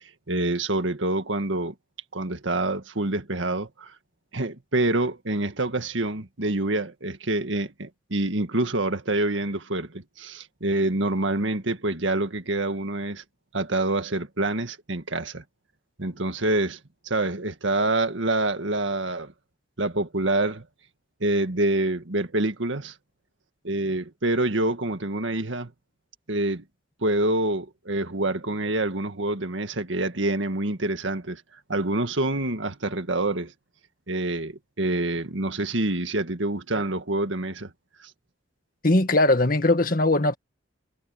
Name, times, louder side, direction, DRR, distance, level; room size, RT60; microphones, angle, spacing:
voice 1, 0.3-1.7 2.1-3.9 4.3-13.2 13.5-15.4 16.0-16.8 17.0-19.3 19.8-20.6 21.2-23.0 23.6-25.7 26.3-26.6 27.0-31.4 31.7-33.5 34.1-37.7, right 2 dB, 90° right, 1.8 m, -26 dB
voice 2, 38.8-40.3, left 2 dB, 50° left, 1.9 m, -20 dB
head